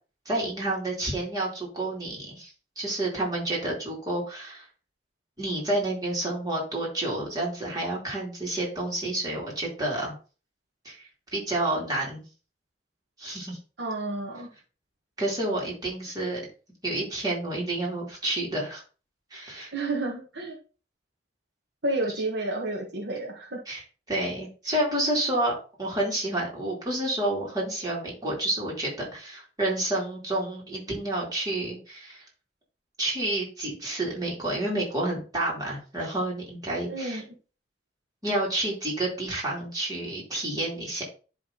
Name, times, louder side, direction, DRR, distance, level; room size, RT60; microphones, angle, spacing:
voice 1, 0.3-2.5 2.8-4.6 5.4-10.1 10.8-11.0 11.3-12.2 13.2-13.6 15.2-16.4 16.8-18.8 19.3-19.7 23.7-23.8 24.1-32.2 33.0-37.2 38.2-41.0, right 1 dB, 20° right, -4 dB, 2.8 m, -29 dB
voice 2, 13.8-14.5 19.7-20.6 21.8-23.6 36.9-37.3, right 2 dB, 70° right, -1 dB, 1.5 m, -30 dB
10.5 x 3.6 x 3.9 m, 0.36 s
head